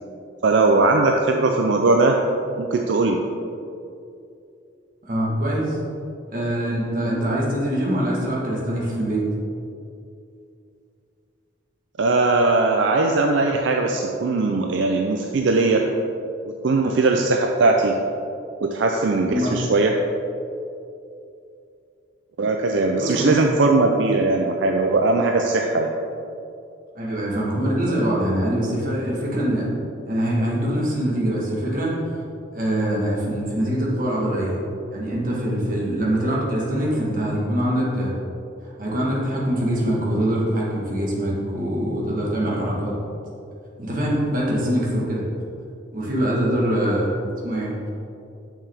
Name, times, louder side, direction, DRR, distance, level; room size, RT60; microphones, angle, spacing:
voice 1, 0.4-2.2 2.6-3.2 12.0-15.8 16.6-18.0 18.6-19.9 22.4-25.9, right 3 dB, 75° right, 2 dB, 0.4 m, -19 dB
voice 2, 5.1-5.8 6.3-9.2 19.3-19.5 23.0-23.3 26.9-29.7 30.1-32.0 32.5-34.6 34.9-38.1 38.8-43.0 43.8-45.2 45.9-47.1 47.4-47.7, right 1 dB, 45° right, -4 dB, 1.5 m, -23 dB
6.6 x 6.1 x 3.5 m, 2.6 s
head